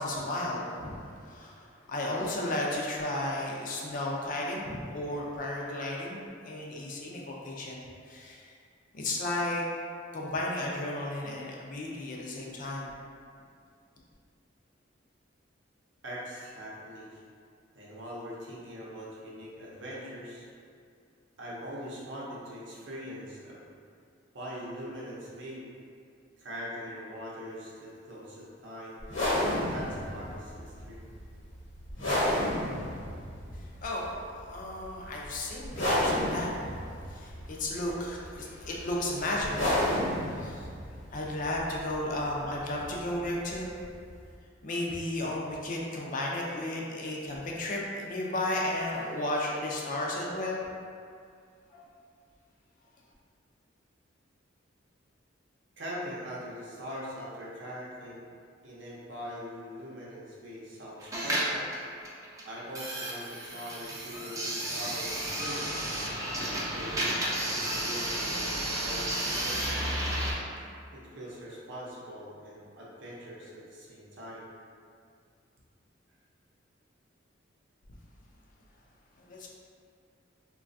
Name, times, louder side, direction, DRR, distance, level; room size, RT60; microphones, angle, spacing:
voice 1, 0.0-8.5 8.9-9.6 10.1-12.9 33.5-36.6 37.1-40.0 40.3-40.7 41.1-43.7 44.6-50.6 51.7-51.8 79.2-79.5, left 1 dB, 45° left, -2 dB, 0.4 m, -34 dB
voice 2, 16.0-17.2 17.7-20.5 21.4-23.6 24.3-25.7 26.4-28.9 29.7-31.1 55.8-58.2 58.6-61.7 62.4-65.9 66.5-69.9 70.9-74.5, equal, 65° right, -6 dB, 0.7 m, -42 dB
sound 1, 29.0-44.3, left 1 dB, 75° left, 1.0 m, -33 dB
sound 2, 61.0-70.3, right 1 dB, 15° right, 0.4 m, -32 dB
3.1 x 2.3 x 2.5 m, 2.3 s
head